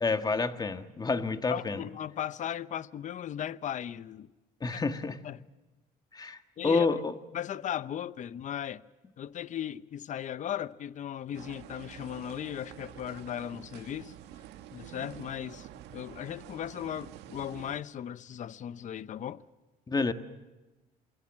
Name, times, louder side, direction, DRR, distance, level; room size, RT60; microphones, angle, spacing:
voice 1, 0.0-1.8 4.6-5.2 6.1-7.1 19.9-20.1, left 4 dB, 25° left, 1.6 m, -29 dB
voice 2, 1.5-4.3 4.7-4.8 5.2-5.4 6.6-6.9 7.3-8.8 9.2-14.1 14.7-19.4, left 10 dB, 45° left, 0.8 m, -37 dB
sound 1, 11.3-17.8, right 11 dB, 85° right, 1.7 m, -48 dB
28.0 x 21.0 x 7.5 m
cardioid pair, 110°, 17 cm